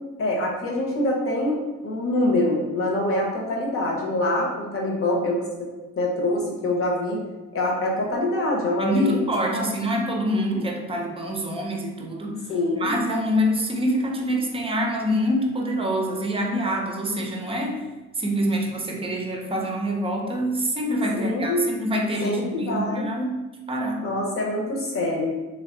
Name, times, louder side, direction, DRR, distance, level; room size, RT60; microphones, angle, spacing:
voice 1, 0.2-5.7 6.0-7.2 7.5-9.2 9.5-9.6 12.5-12.9 21.1-21.7 22.2-23.1 24.0-25.3, left 1 dB, 45° left, -1 dB, 1.0 m, -25 dB
voice 2, 8.8-12.4 12.7-17.8 18.2-23.4 23.7-24.0, equal, 20° right, 1 dB, 0.6 m, -25 dB
3.3 x 2.3 x 3.8 m, 1.2 s
cardioid pair, 90°, 30 cm